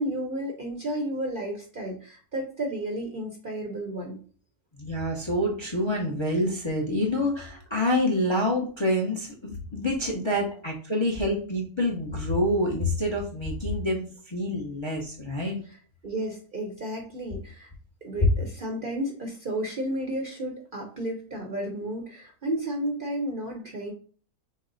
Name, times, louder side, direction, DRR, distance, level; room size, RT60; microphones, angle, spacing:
voice 1, 0.0-4.2 15.6-15.8 16.0-17.7 18.0-23.9, right 1 dB, 45° right, 1 dB, 0.8 m, -32 dB
voice 2, 4.8-15.5, left 1 dB, 25° left, -1 dB, 0.6 m, -27 dB
6.2 x 2.1 x 3.9 m, 0.43 s
omnidirectional pair, 1.6 m